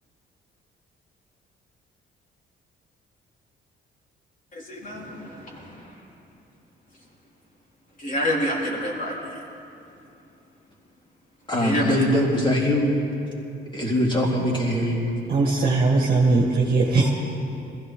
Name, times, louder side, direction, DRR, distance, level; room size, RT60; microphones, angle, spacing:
voice 1, 4.5-5.9 8.0-9.4 11.6-11.9, equal, 40° left, -3 dB, 3.7 m, -28 dB
voice 2, 11.5-12.9 13.7-15.0, left 1 dB, 25° left, -4 dB, 3.8 m, -22 dB
voice 3, 15.3-17.1, right 3 dB, 50° right, -2 dB, 1.8 m, -20 dB
21.5 x 15.5 x 3.8 m, 2.7 s
cardioid pair, 90°, 20 cm